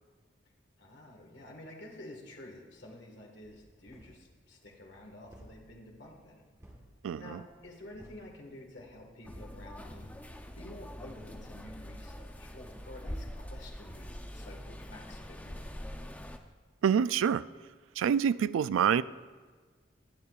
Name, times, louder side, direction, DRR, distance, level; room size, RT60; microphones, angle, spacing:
voice 1, 0.8-6.4 7.2-10.1 10.5-15.7, left 1 dB, 65° left, 0 dB, 1.6 m, -50 dB
sound 1, 3.4-4.3 4.6-8.3 8.7-9.7 10.1-10.5 10.8-11.2 12.1-15.5 15.8-16.1, equal, 15° right, 1.3 m, -57 dB
voice 2, 7.0-7.4 16.8-17.4 18.0-19.0, right 8 dB, 90° right, 17 dB, 0.3 m, -26 dB
sound 2, 9.2-16.4, equal, 10° left, 0.5 m, -44 dB
21.0 x 8.3 x 2.4 m, 1.4 s
head